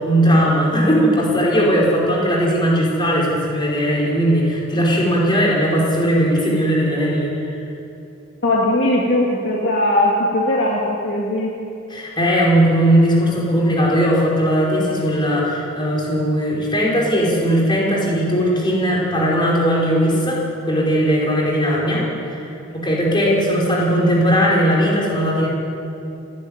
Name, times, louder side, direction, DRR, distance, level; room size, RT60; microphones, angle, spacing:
voice 1, 0.0-7.5 11.9-22.5 22.7-25.5, equal, 20° left, -4 dB, 5.2 m, -18 dB
voice 2, 8.4-11.5, left 1 dB, 50° left, -3 dB, 2.5 m, -19 dB
29.0 x 10.5 x 9.7 m, 2.7 s
head